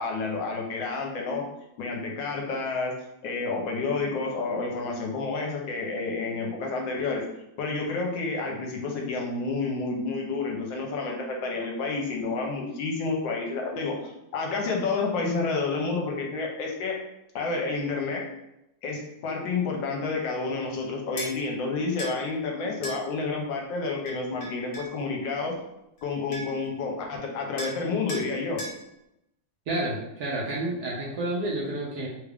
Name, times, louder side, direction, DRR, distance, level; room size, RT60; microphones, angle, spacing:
voice 1, 0.0-1.4 1.8-2.9 3.2-7.2 7.6-16.9 17.3-18.2 18.8-25.5 26.0-28.6, left 3 dB, 75° left, 0 dB, 1.3 m, -30 dB
sound 1, 21.2-21.3 22.0-22.2 22.8-23.0 24.1-24.9 26.0-26.1 26.3-26.7 27.6-27.8 28.1-28.3 28.6-28.8, equal, 60° left, 0.9 m, -36 dB
voice 2, 29.7-32.1, right 1 dB, 65° right, -4 dB, 1.0 m, -30 dB
3.3 x 2.4 x 3.3 m, 0.86 s
omnidirectional pair, 2.1 m